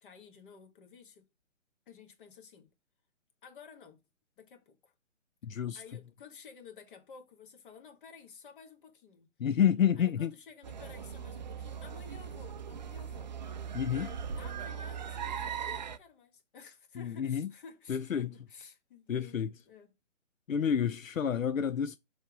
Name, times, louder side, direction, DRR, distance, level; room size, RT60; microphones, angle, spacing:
voice 1, 0.0-1.3 1.9-2.7 3.4-4.0 4.4-4.9 5.7-9.3 10.0-13.3 13.8-19.9, left 6 dB, 40° left, 1.7 m, -53 dB
voice 2, 5.4-5.8 9.4-10.3 13.7-14.1 17.0-17.5 17.9-18.3 19.1-19.5 20.5-22.0, left 8 dB, 90° left, 0.5 m, -29 dB
sound 1, 10.6-16.0, right 7 dB, 35° right, 0.5 m, -39 dB
6.4 x 3.4 x 4.6 m
figure-of-eight pair, 135°, 39 cm